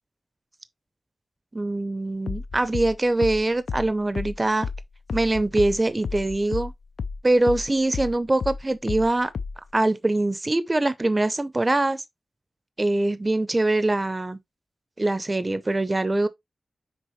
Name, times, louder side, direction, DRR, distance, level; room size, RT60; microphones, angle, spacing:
voice 1, 1.5-4.7 5.1-6.7 7.2-9.3 9.7-12.0 12.8-14.4 15.0-16.3, right 2 dB, 20° right, 0.6 m, -23 dB
sound 1, 2.3-7.2 7.5-9.7, left 5 dB, 85° left, 0.6 m, -32 dB
6.4 x 4.8 x 3.1 m
wide cardioid pair, 145°, 0 cm